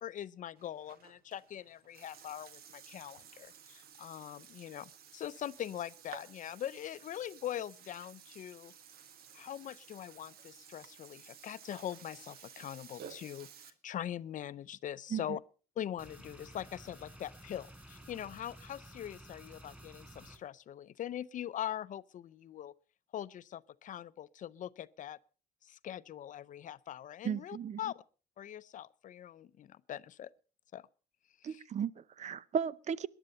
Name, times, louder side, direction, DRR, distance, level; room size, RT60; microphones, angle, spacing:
voice 1, 0.0-8.7 9.3-13.5 13.8-15.4 15.8-22.7 23.1-25.2 25.6-28.0 28.4-30.3 30.7-30.9 31.4-31.6, left 11 dB, 50° left, 0.6 m, -42 dB
Burping eructation, 0.6-13.7, right 8 dB, 65° right, 1.7 m, -54 dB
sound 1, 16.0-20.4, right 1 dB, 10° right, 5.0 m, -53 dB
voice 2, 27.2-27.8 31.4-33.1, right 7 dB, 45° right, 0.7 m, -35 dB
19.0 x 11.0 x 5.5 m
cardioid pair, 110°, 17 cm